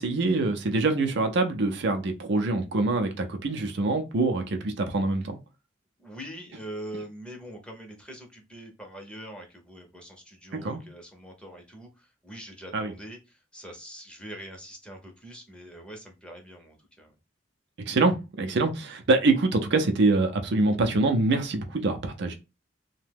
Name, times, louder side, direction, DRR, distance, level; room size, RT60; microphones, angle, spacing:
voice 1, 0.0-5.4 10.6-10.8 12.7-12.9 17.9-22.3, right 3 dB, 65° right, 6 dB, 0.5 m, -25 dB
voice 2, 6.0-17.1, right 1 dB, 5° left, 2 dB, 0.7 m, -43 dB
2.8 x 2.1 x 3.3 m, 0.27 s
head